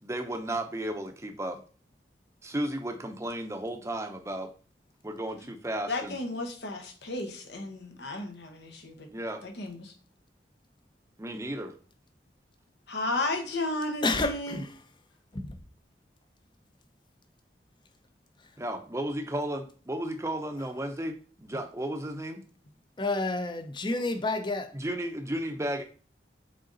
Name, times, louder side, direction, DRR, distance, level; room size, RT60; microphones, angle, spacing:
voice 1, 0.0-1.6 2.4-4.5 5.0-6.2 9.1-9.4 11.2-11.7 18.6-22.4 24.7-25.8, right 1 dB, 15° right, 0.7 m, -34 dB
voice 2, 5.9-9.1 9.4-9.9 12.9-14.6, left 2 dB, 70° left, 1.0 m, -33 dB
voice 3, 14.0-14.7 15.3-15.6 18.4-18.5 23.0-24.7, left 2 dB, 25° left, 0.6 m, -30 dB
6.6 x 3.9 x 3.9 m
head